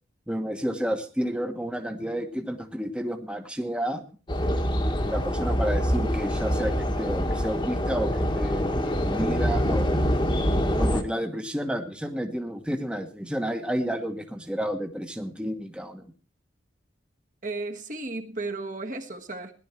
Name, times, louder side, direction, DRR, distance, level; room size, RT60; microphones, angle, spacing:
voice 1, 0.3-4.0 5.0-10.0 10.8-16.1, equal, 5° right, 5 dB, 1.2 m, -31 dB
sound 1, 4.3-11.0, equal, 25° left, 1.3 m, -25 dB
voice 2, 17.4-19.5, right 2 dB, 45° right, 4 dB, 1.6 m, -34 dB
17.0 x 11.5 x 4.5 m, 0.38 s
head